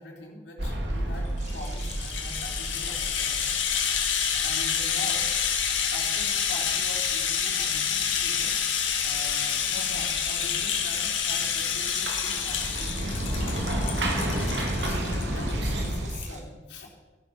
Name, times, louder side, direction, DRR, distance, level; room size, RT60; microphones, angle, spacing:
voice 1, 0.0-3.5 4.4-5.2 5.9-13.5 13.8-16.9, left 2 dB, 65° left, -1 dB, 3.5 m, -43 dB
sound 1, 0.6-16.2, right 1 dB, 65° right, 2.2 m, -33 dB
Rattle (instrument), 1.4-15.5 15.8-15.9 16.2-16.3, left 8 dB, 90° left, 1.9 m, -28 dB
Stream, 1.4-16.4, right 4 dB, 40° right, 2.0 m, -46 dB
14.0 x 11.5 x 5.8 m, 1.2 s
head